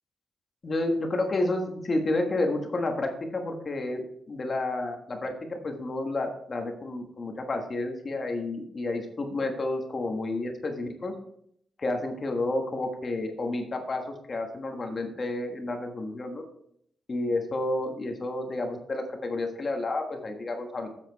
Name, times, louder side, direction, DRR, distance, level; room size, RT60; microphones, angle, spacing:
voice 1, 0.6-11.1 11.8-16.4 17.1-20.9, left 2 dB, 30° left, 4 dB, 1.3 m, -30 dB
7.9 x 7.6 x 4.6 m, 0.69 s
wide cardioid pair, 155°, 0 cm